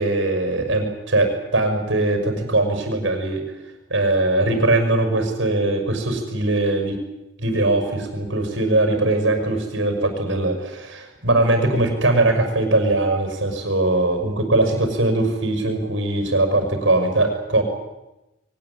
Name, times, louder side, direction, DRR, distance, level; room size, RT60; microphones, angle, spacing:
voice 1, 0.0-3.4 3.9-7.0 7.4-17.6, right 2 dB, 75° right, 6 dB, 6.1 m, -21 dB
23.0 x 19.0 x 9.8 m, 0.98 s
head